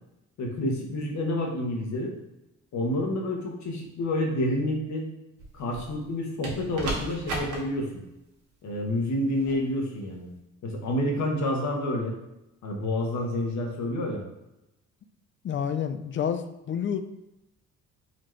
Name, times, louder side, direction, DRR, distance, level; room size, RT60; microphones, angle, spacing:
voice 1, 0.4-2.1 2.7-5.1 5.5-8.0 8.6-10.3 10.6-12.2 12.6-14.2, left 1 dB, 70° left, 1 dB, 1.1 m, -29 dB
sound 1, 5.4-6.0 6.4-7.6 9.4-9.6, right 1 dB, 85° right, 1.3 m, -34 dB
voice 2, 15.4-17.0, left 8 dB, 40° left, 9 dB, 0.4 m, -29 dB
4.2 x 3.0 x 3.1 m, 0.93 s
cardioid pair, 90°, 30 cm